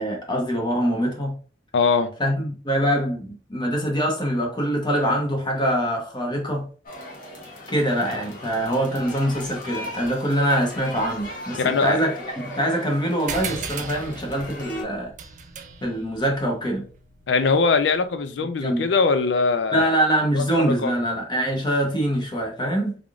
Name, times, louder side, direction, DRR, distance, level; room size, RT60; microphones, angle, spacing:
voice 1, 0.0-1.3 2.2-6.7 7.7-15.1 15.8-16.8 18.6-18.9 19.7-23.0, equal, 25° left, 0.8 m, -24 dB
voice 2, 1.7-2.1 11.6-12.0 17.3-19.9 20.3-20.9, left 4 dB, 75° left, 0.4 m, -21 dB
sound 1, 6.9-14.8, left 1 dB, 50° left, 1.1 m, -38 dB
sound 2, 13.3-18.2, right 5 dB, 45° right, 0.5 m, -37 dB
3.6 x 3.4 x 2.4 m
head